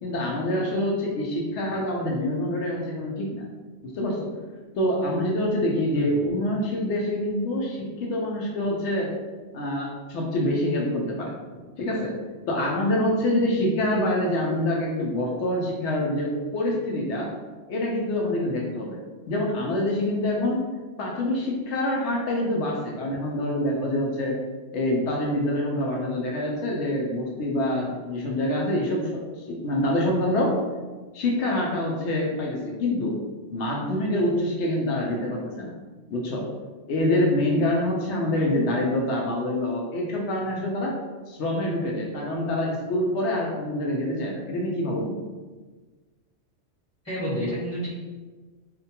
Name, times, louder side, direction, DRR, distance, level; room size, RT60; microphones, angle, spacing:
voice 1, 0.0-3.4 3.8-4.3 4.7-9.1 9.5-11.3 11.8-12.1 12.5-17.3 17.7-19.0 19.3-20.7 21.0-24.4 24.7-30.6 31.1-33.2 33.5-35.7 36.1-36.5 36.9-40.9 41.3-45.2, left 1 dB, 70° left, -2 dB, 0.8 m, -26 dB
voice 2, 5.9-6.2 38.3-38.5 47.0-47.9, equal, 15° left, -12 dB, 1.2 m, -30 dB
2.6 x 2.2 x 2.7 m, 1.3 s
omnidirectional pair, 1.3 m